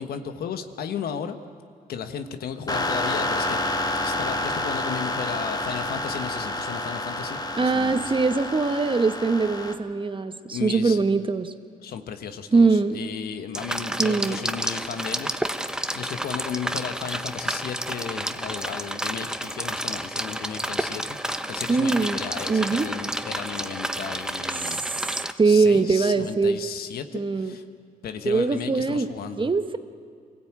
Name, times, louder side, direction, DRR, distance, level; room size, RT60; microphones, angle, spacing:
voice 1, 0.0-1.4 1.9-3.6 4.0-8.1 10.5-11.0 11.8-21.2 21.5-24.8 25.4-27.6 28.0-29.5, left 7 dB, 85° left, 8 dB, 1.3 m, -34 dB
sound 1, 2.7-9.7, left 1 dB, 25° left, 2.1 m, -29 dB
voice 2, 7.6-11.5 12.5-13.0 14.0-14.4 21.7-22.2 22.5-22.9 24.6-24.9 25.4-26.6 27.1-27.5 28.2-29.1 29.4-29.8, right 4 dB, 35° right, 10 dB, 1.3 m, -22 dB
sound 2, 13.5-25.3, right 1 dB, 5° right, 1.1 m, -30 dB
24.0 x 16.0 x 8.9 m, 2.2 s
cardioid pair, 65°, 15 cm